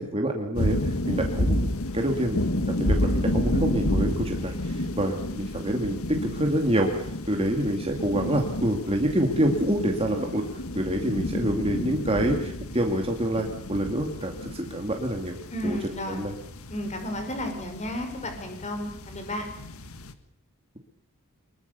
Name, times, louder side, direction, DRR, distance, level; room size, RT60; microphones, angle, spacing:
voice 1, 0.0-1.6 1.9-6.0 6.3-10.4 10.7-15.4 15.6-15.8 16.0-16.3, right 1 dB, 25° right, 2 dB, 2.4 m, -27 dB
sound 1, 0.5-20.1, left 1 dB, 75° left, 1.8 m, -30 dB
voice 2, 15.5-16.2 16.7-19.5, equal, 30° left, 5 dB, 5.9 m, -33 dB
24.0 x 22.0 x 7.0 m, 0.67 s
head